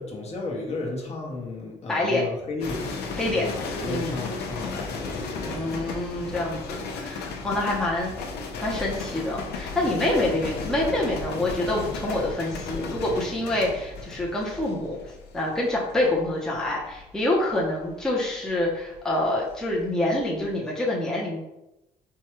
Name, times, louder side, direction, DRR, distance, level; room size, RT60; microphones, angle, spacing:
voice 1, 0.0-2.9 3.3-5.8, left 3 dB, 40° left, -1 dB, 0.9 m, -34 dB
voice 2, 1.9-2.2 3.2-3.5 3.9-4.2 5.5-8.1 8.6-15.0 15.3-21.4, left 1 dB, 5° left, -4 dB, 0.7 m, -26 dB
sound 1, 2.6-19.8 20.1-20.5, left 4 dB, 75° left, 0.7 m, -35 dB
4.5 x 2.3 x 3.0 m, 0.91 s
cardioid pair, 110°, 17 cm